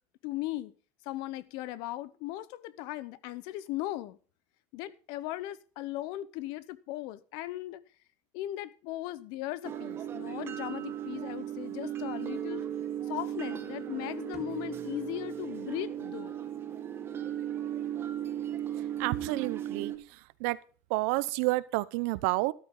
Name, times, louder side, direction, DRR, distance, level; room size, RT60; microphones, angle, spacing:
voice 1, 0.2-0.7 1.0-4.2 4.7-7.8 8.3-12.6 13.1-16.4, left 15 dB, 65° left, 0.9 m, -38 dB
sound 1, 9.6-20.0, right 10 dB, 30° right, 1.9 m, -36 dB
sound 2, 14.3-16.2, right 4 dB, 5° right, 3.2 m, -55 dB
voice 2, 19.0-20.6 20.9-22.5, right 21 dB, 70° right, 0.8 m, -30 dB
13.0 x 12.0 x 3.9 m
supercardioid pair, 140°, 8 cm